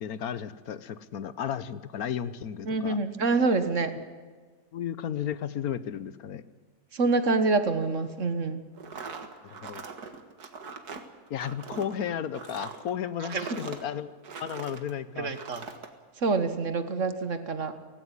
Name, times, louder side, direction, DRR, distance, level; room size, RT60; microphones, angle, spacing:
voice 1, 0.0-3.0 4.7-6.4 9.4-9.8 11.3-14.1 14.4-15.3, left 9 dB, 70° left, 15 dB, 1.3 m, -34 dB
voice 2, 2.7-3.9 6.9-8.6 13.2-13.6 15.2-15.6 16.2-17.8, right 3 dB, 50° right, 10 dB, 1.7 m, -26 dB
sound 1, 8.7-14.9 15.3-15.9, right 5 dB, 80° right, 2.3 m, -41 dB
18.0 x 16.5 x 9.8 m, 1.5 s
omnidirectional pair, 1.7 m